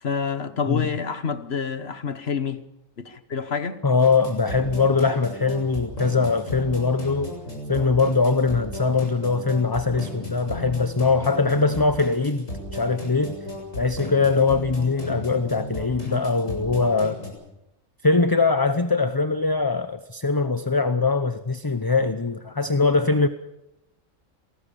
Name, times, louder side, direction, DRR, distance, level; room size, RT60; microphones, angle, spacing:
voice 1, 0.0-2.6 3.0-3.8 16.0-16.3, left 6 dB, 50° left, 1.4 m, -28 dB
voice 2, 3.8-7.4 7.7-13.4 13.7-17.2 18.0-23.3, left 4 dB, 20° left, 0.7 m, -22 dB
sound 1, 4.0-17.3, left 1 dB, 70° left, 7.7 m, -35 dB
27.0 x 19.5 x 7.0 m
omnidirectional pair, 1.4 m